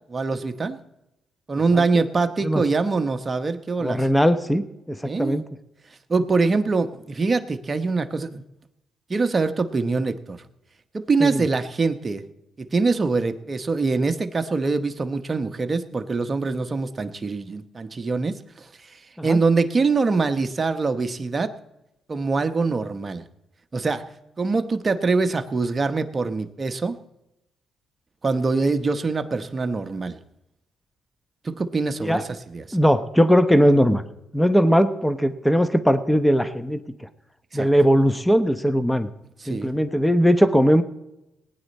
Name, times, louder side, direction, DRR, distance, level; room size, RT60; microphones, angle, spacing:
voice 1, 0.1-0.8 1.5-4.0 5.0-5.4 6.1-8.4 9.1-10.4 10.9-12.2 12.6-21.5 22.1-23.2 23.7-24.0 24.4-27.0 28.2-30.2 31.4-32.8 37.5-37.7 39.4-39.7, right 4 dB, 35° right, 8 dB, 1.0 m, -24 dB
voice 2, 3.8-5.4 11.2-11.4 19.2-19.4 32.0-32.2 32.7-34.0 34.3-37.1 37.5-39.1 39.5-40.8, equal, 5° left, 11 dB, 0.9 m, -19 dB
19.0 x 9.5 x 4.2 m, 0.90 s
cardioid pair, 75°, 0 cm